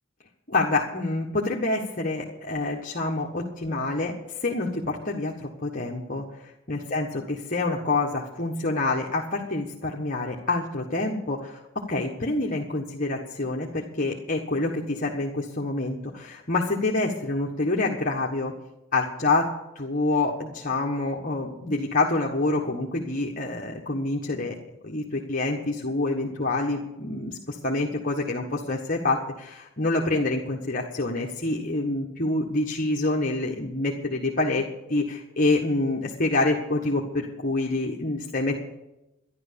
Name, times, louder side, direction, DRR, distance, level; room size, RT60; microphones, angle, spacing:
voice 1, 0.5-4.1 4.4-7.1 7.5-18.5 18.9-19.4 19.7-24.6 24.8-38.6, left 2 dB, 40° left, -1 dB, 1.5 m, -27 dB
12.0 x 11.5 x 6.9 m, 0.93 s
head